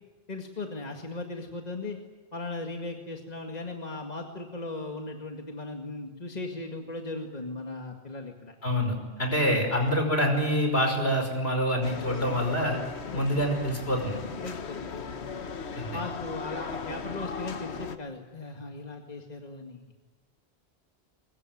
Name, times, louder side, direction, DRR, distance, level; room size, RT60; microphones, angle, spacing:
voice 1, 0.3-2.0 2.3-8.5 11.0-11.1 13.1-13.3 14.4-15.5 15.9-19.8, left 2 dB, 40° left, 2 dB, 2.2 m, -38 dB
voice 2, 8.6-12.8 13.1-14.2 15.7-16.0, equal, 70° left, 4 dB, 5.7 m, -26 dB
sound 1, 11.8-18.0, left 5 dB, 90° left, 1.5 m, -38 dB
23.5 x 22.0 x 9.4 m, 1.3 s
omnidirectional pair, 1.1 m